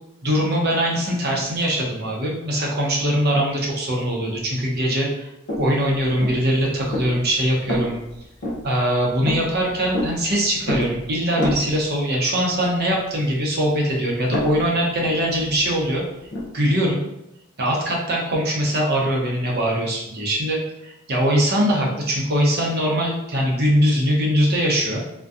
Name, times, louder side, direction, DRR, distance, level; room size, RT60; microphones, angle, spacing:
voice 1, 0.2-5.3 5.6-8.0 8.6-16.0 16.5-17.0 17.6-25.0, equal, 45° right, -2 dB, 0.6 m, -22 dB
sound 1, 5.5-12.0 14.2-16.5, left 1 dB, 50° left, 0.6 m, -30 dB
2.6 x 2.1 x 2.4 m, 0.85 s
head